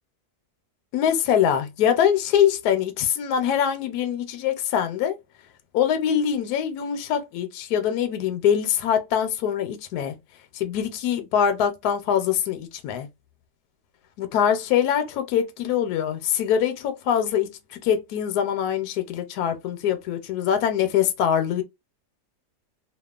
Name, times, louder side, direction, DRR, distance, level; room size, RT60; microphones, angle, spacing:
voice 1, 0.9-5.2 5.7-10.1 10.5-13.1 14.2-21.6, left 9 dB, 75° left, 1.1 m, -23 dB
2.8 x 2.3 x 2.3 m
omnidirectional pair, 1.7 m